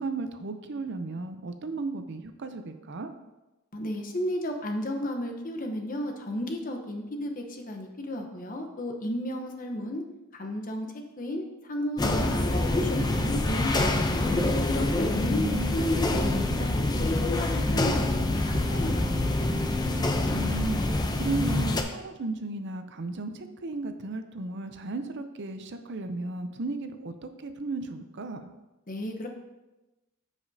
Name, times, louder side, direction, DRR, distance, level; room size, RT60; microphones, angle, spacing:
voice 1, 0.0-3.1 15.0-15.8 20.3-28.5, right 3 dB, 55° right, 8 dB, 0.6 m, -35 dB
voice 2, 3.7-10.0 10.3-10.9 11.2-14.3 14.7-16.3 16.6-19.8 28.9-29.3, left 1 dB, 40° left, 4 dB, 0.9 m, -33 dB
sound 1, 12.0-21.8, left 2 dB, 20° left, 0.5 m, -26 dB
14.0 x 5.0 x 2.7 m, 1.0 s
head